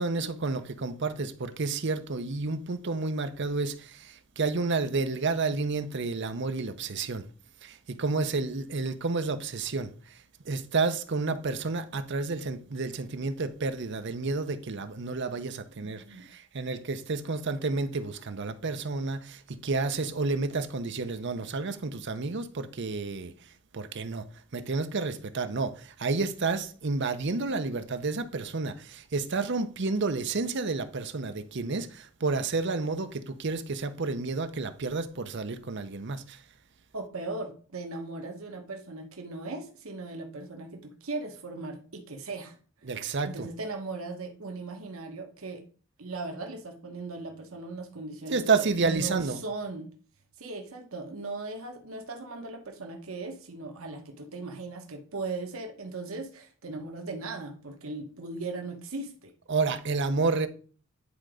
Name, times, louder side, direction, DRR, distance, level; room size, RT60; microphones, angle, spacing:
voice 1, 0.0-7.2 7.6-9.9 10.5-23.3 23.7-24.2 24.5-36.4 42.8-43.5 48.3-49.4 59.5-60.5, right 3 dB, 55° right, 0.7 m, -30 dB
voice 2, 15.8-16.3 36.9-42.5 43.2-45.6 46.0-49.9 50.4-59.3, right 3 dB, 80° right, 1.1 m, -38 dB
9.7 x 3.9 x 4.9 m
head